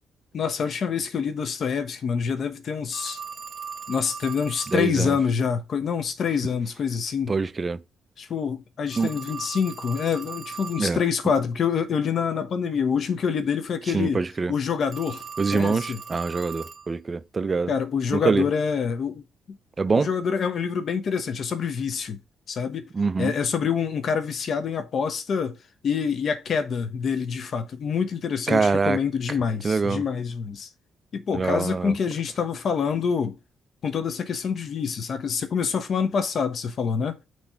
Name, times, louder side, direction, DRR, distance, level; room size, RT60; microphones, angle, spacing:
voice 1, 0.3-3.2 3.9-7.3 8.2-14.2 14.5-15.2 15.5-16.0 17.7-19.6 20.0-22.2 22.5-22.9 23.2-25.6 25.8-30.7 31.1-33.4 33.8-37.1, left 6 dB, 55° left, 1.0 m, -26 dB
Telephone, 2.9-4.9 8.9-10.9 14.9-16.9, right 6 dB, 45° right, 1.0 m, -38 dB
voice 2, 4.7-5.2 7.3-7.8 9.0-9.1 10.8-11.0 13.9-14.5 15.4-17.7 18.1-18.5 19.8-20.1 22.9-23.3 28.5-29.0 29.6-30.0 31.3-31.9, right 4 dB, 30° right, 0.4 m, -24 dB
6.3 x 3.2 x 5.6 m
cardioid pair, 90°, 0 cm